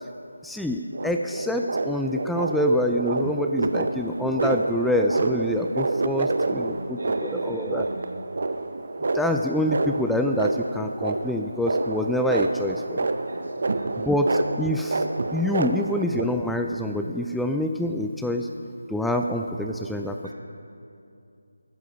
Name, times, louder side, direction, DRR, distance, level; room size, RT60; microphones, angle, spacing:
voice 1, 0.4-7.9 9.1-13.1 14.0-15.0 15.3-18.5 18.9-20.2, left 1 dB, ahead, 3 dB, 0.3 m, -26 dB
sound 1, 0.9-16.2, right 3 dB, 55° right, 0.8 m, -28 dB
voice 2, 6.2-8.1 13.2-14.1 20.2-20.3, right 1 dB, 70° right, 0 dB, 2.7 m, -41 dB
13.5 x 10.5 x 5.7 m, 2.6 s
figure-of-eight pair, 160°, 0 cm